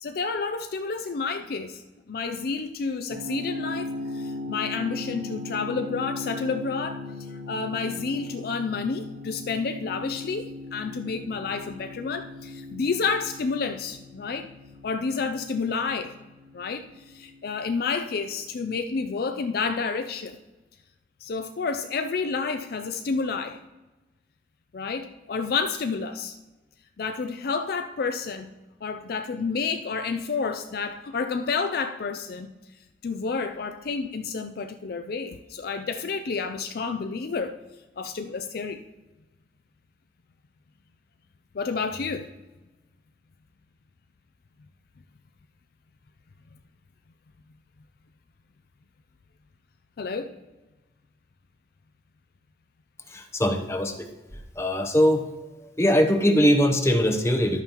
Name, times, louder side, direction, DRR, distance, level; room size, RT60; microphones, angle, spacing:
voice 1, 0.0-14.5 14.8-16.1 16.5-16.8 17.1-20.4 21.2-23.6 24.7-26.4 27.0-28.5 28.8-32.5 33.0-37.6 38.0-38.8 41.5-42.3 50.0-50.3, left 4 dB, 55° left, 8 dB, 0.4 m, -30 dB
sound 1, 3.1-17.8, left 2 dB, 35° right, 2.7 m, -38 dB
voice 2, 53.1-54.1 54.6-55.3 55.6-57.6, equal, 15° left, 5 dB, 0.7 m, -21 dB
11.5 x 8.9 x 3.0 m, 1.1 s
head